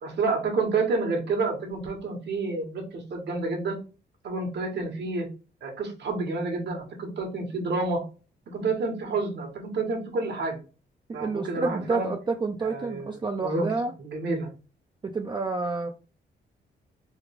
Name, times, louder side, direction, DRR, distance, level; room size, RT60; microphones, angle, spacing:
voice 1, 0.0-3.8 4.2-5.3 5.6-8.0 8.5-10.6 11.1-12.1 12.6-13.1 13.4-13.7 14.0-14.5, right 3 dB, 65° right, 2 dB, 1.3 m, -29 dB
voice 2, 11.1-13.9 15.0-15.9, right 3 dB, 25° right, 4 dB, 0.4 m, -29 dB
3.3 x 2.2 x 3.3 m, 0.33 s
cardioid pair, 80°, 19 cm